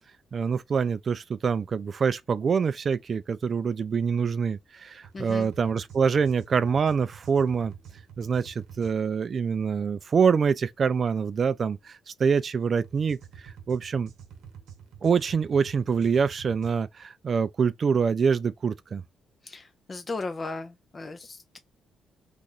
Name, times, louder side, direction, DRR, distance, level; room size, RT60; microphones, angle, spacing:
voice 1, 0.3-7.7 8.2-14.1 15.0-19.0, right 6 dB, 45° right, 0.3 m, -25 dB
sound 1, 5.0-8.9 12.8-16.7, right 8 dB, 85° right, 0.8 m, -47 dB
voice 2, 5.1-5.5 19.5-21.6, left 3 dB, 30° left, 0.5 m, -36 dB
2.9 x 2.5 x 3.7 m
cardioid pair, 90°, 0 cm